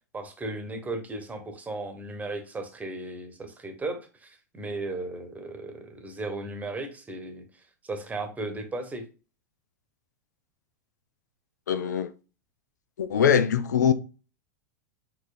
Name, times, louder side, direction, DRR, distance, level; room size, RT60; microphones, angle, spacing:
voice 1, 0.1-9.0, right 2 dB, 15° right, 1.1 m, -36 dB
voice 2, 11.7-12.1 13.0-13.9, left 8 dB, 80° left, 0.5 m, -22 dB
4.7 x 4.2 x 2.5 m
hypercardioid pair, 90°, 9 cm